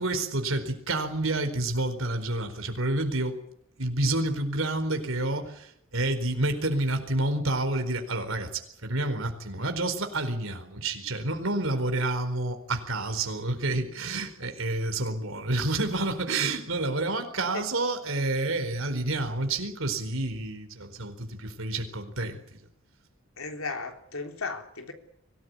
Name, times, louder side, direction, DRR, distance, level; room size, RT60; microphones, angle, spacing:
voice 1, 0.0-3.3 3.8-22.4, right 2 dB, 70° right, 8 dB, 4.5 m, -29 dB
voice 2, 23.4-24.9, left 4 dB, 80° left, 5 dB, 3.6 m, -35 dB
24.0 x 18.5 x 9.7 m, 0.73 s
head